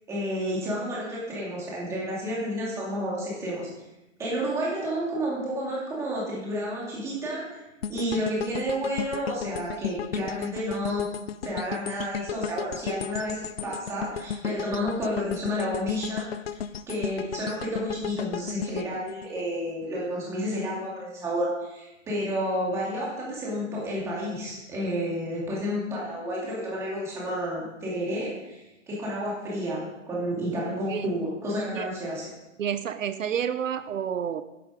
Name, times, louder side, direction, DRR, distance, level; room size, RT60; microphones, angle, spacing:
voice 1, 0.1-3.7 4.2-7.6 7.9-11.1 11.4-16.3 16.9-32.3, equal, 5° right, -5 dB, 2.4 m, -30 dB
sound 1, 7.8-20.0 20.4-20.6, left 8 dB, 50° left, 0.5 m, -35 dB
voice 2, 32.6-34.4, right 8 dB, 75° right, 11 dB, 0.9 m, -29 dB
11.0 x 11.0 x 5.1 m, 0.98 s
hypercardioid pair, 175°, 40 cm